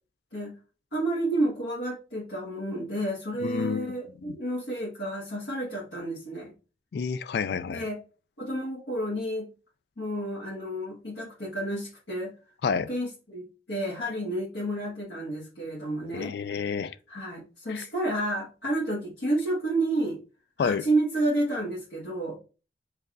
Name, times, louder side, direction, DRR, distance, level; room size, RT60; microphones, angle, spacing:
voice 1, 0.9-6.5 7.7-8.0 8.4-9.5 10.0-12.3 12.7-20.2 20.6-22.4, right 1 dB, 90° left, 1.6 m, -30 dB
voice 2, 3.4-3.9 4.3-4.4 6.9-7.9 12.6-12.9 16.1-16.9 17.7-17.9 20.6-20.8, left 6 dB, 65° left, 0.3 m, -29 dB
5.4 x 3.5 x 2.5 m
head